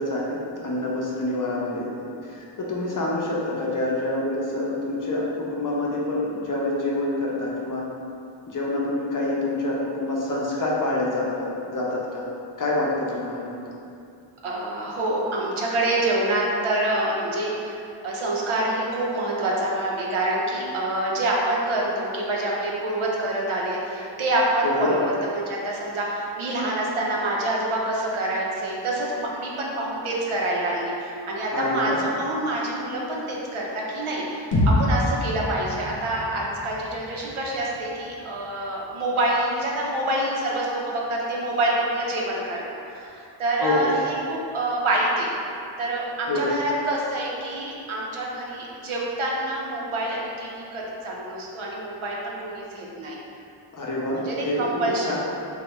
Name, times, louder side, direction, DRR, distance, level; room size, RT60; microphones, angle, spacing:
voice 1, 0.0-7.8 8.5-12.3 12.6-13.6 24.6-25.0 31.5-32.0 43.6-43.9 46.3-46.5 53.7-55.2, left 2 dB, 40° left, -4 dB, 0.6 m, -27 dB
voice 2, 14.4-42.6 42.9-45.3 45.8-53.2 54.1-55.2, right 1 dB, 90° right, -3 dB, 0.6 m, -26 dB
sound 1, 34.5-38.5, left 1 dB, 80° left, 0.7 m, -27 dB
3.3 x 2.2 x 2.9 m, 2.6 s
wide cardioid pair, 65°, 48 cm